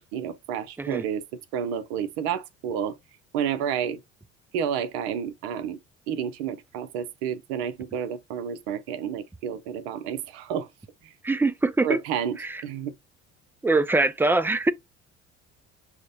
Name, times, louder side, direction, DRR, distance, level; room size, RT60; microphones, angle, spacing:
voice 1, 0.1-1.2 1.5-3.0 3.3-4.0 4.5-5.8 6.1-10.7 11.0-11.1 11.8-12.4 12.6-12.9, right 8 dB, 75° right, 0.7 m, -30 dB
voice 2, 11.2-12.0 12.4-12.6 13.6-14.7, right 2 dB, 5° right, 0.3 m, -23 dB
6.3 x 2.1 x 2.6 m
hypercardioid pair, 65°, 35 cm